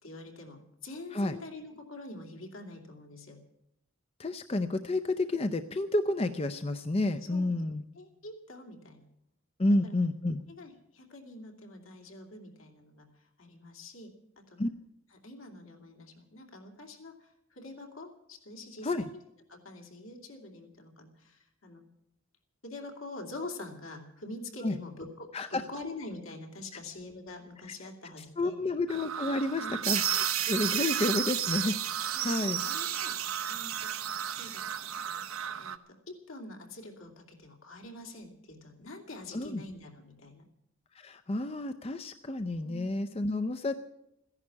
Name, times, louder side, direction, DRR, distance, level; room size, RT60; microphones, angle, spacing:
voice 1, 0.0-3.5 7.3-7.6 8.0-9.1 9.8-9.9 10.5-14.6 15.2-19.2 19.5-21.9 22.6-28.6 29.6-29.8 32.1-33.2 33.5-33.9 34.3-34.6 35.6-40.5 42.6-42.9, left 2 dB, 75° left, 2 dB, 2.7 m, -45 dB
voice 2, 4.2-7.8 9.6-10.4 14.6-14.7 18.8-19.0 24.6-24.7 25.3-25.6 28.2-32.6 39.3-39.6 40.9-43.8, left 2 dB, 25° left, 9 dB, 0.5 m, -30 dB
sound 1, 28.9-35.8, right 8 dB, 70° right, 0.8 m, -38 dB
sound 2, 29.8-35.4, right 11 dB, 85° right, 1.5 m, -33 dB
15.0 x 11.0 x 8.6 m, 0.81 s
head